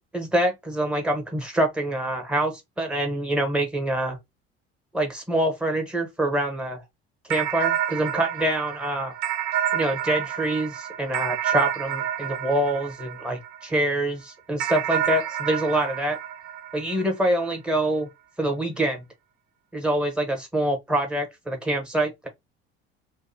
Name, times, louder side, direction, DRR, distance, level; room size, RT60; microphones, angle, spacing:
voice 1, 0.0-4.2 4.9-6.8 7.3-9.1 9.7-16.2 16.7-18.1 18.4-19.0 19.7-22.3, right 1 dB, 5° right, 1.1 m, -25 dB
sound 1, 7.3-13.9 14.6-17.4, right 10 dB, 60° right, 0.6 m, -29 dB
2.6 x 2.2 x 2.6 m
hypercardioid pair, 70°, 32 cm